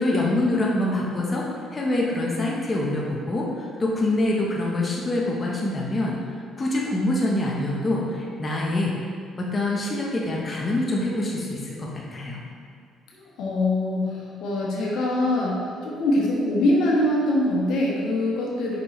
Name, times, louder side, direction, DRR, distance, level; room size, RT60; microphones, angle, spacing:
voice 1, 0.0-6.2 6.6-8.9 9.4-12.4, left 1 dB, 30° left, -3 dB, 1.1 m, -25 dB
voice 2, 13.1-18.8, left 1 dB, 75° left, -4 dB, 1.4 m, -23 dB
6.6 x 5.6 x 3.3 m, 2.2 s
supercardioid pair, 75°, 0 cm